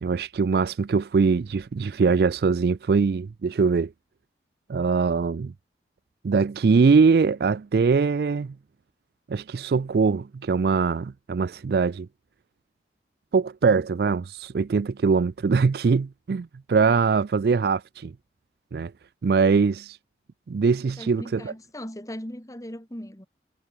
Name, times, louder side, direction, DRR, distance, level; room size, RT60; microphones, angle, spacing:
voice 1, 0.0-3.9 4.7-5.5 6.2-8.5 9.3-12.1 13.3-18.1 18.7-18.9 19.2-20.0 20.5-21.5, right 5 dB, 60° right, 0.4 m, -22 dB
voice 2, 20.8-23.3, equal, 20° left, 2.3 m, -38 dB
head